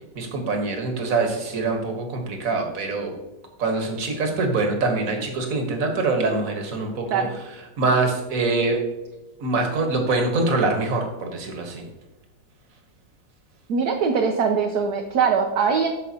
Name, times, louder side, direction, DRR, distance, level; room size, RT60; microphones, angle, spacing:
voice 1, 0.1-3.1 3.6-7.2 7.8-8.8 9.4-11.8, right 3 dB, 55° right, 3 dB, 1.6 m, -24 dB
voice 2, 13.7-15.9, right 6 dB, 70° right, 3 dB, 1.2 m, -22 dB
13.5 x 5.2 x 2.8 m, 1.1 s
omnidirectional pair, 1.9 m